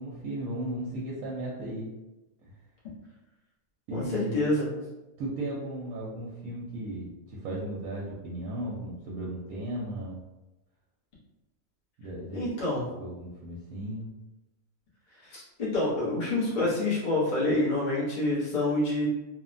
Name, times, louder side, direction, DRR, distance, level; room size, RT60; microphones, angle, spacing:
voice 1, 0.0-1.9 3.9-4.5 5.2-10.2 12.0-12.5 13.0-14.1, right 1 dB, 85° right, -4 dB, 1.0 m, -35 dB
voice 2, 3.9-4.7 12.3-12.8 15.2-19.1, left 2 dB, 40° left, -7 dB, 0.8 m, -27 dB
3.0 x 2.1 x 2.5 m, 1.0 s
omnidirectional pair, 1.5 m